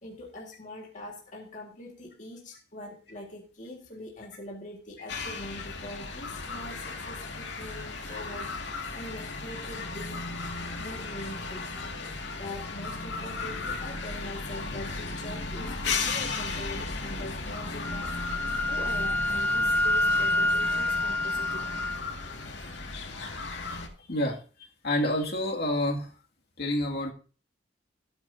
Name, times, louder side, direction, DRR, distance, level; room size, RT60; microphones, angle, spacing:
voice 1, 0.0-8.6 8.9-10.3 10.8-11.7 12.2-18.2 18.7-21.7, left 1 dB, 45° left, -1 dB, 1.9 m, -43 dB
sound 1, 5.1-23.9, left 3 dB, 85° left, 2.1 m, -35 dB
Wind instrument woodwind instrument, 17.8-22.0, left 1 dB, 10° left, 0.4 m, -27 dB
voice 2, 24.1-24.4 24.8-26.1 26.6-27.1, left 1 dB, 60° left, 0 dB, 2.2 m, -28 dB
16.5 x 9.0 x 2.7 m, 0.37 s
head